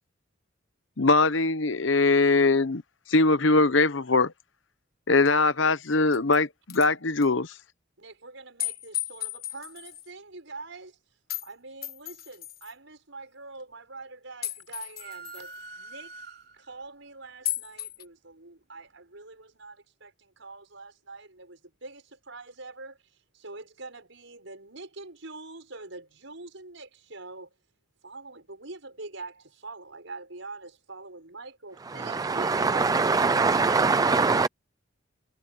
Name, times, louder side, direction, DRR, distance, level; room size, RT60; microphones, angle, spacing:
voice 1, 1.0-2.8 3.1-4.3 5.1-7.5, left 3 dB, 70° left, 1.0 m, -21 dB
sound 1, 5.3-5.4 5.9-6.4 6.7-6.9 7.2-7.3 8.6-10.1 11.3-11.5 11.8-12.7 14.4-15.6 17.5-18.1, left 13 dB, 50° left, 1.4 m, -35 dB
voice 2, 8.0-11.0 11.4-16.2 16.5-23.0 23.3-27.5 28.0-32.9 33.5-34.5, right 3 dB, 70° right, 6.8 m, -44 dB
sound 2, 15.0-16.8, right 3 dB, 55° right, 4.1 m, -44 dB
voice 3, 31.9-34.5, right 4 dB, 20° right, 0.3 m, -23 dB
head